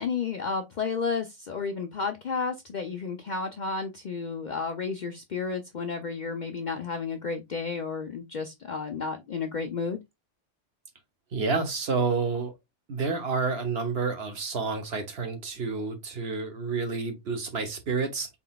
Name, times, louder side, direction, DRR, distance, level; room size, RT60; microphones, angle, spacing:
voice 1, 0.0-10.0, left 5 dB, 55° left, 0.5 m, -32 dB
voice 2, 11.3-12.5 12.9-18.3, right 4 dB, 60° right, 1.1 m, -29 dB
4.0 x 3.7 x 2.3 m
omnidirectional pair, 1.3 m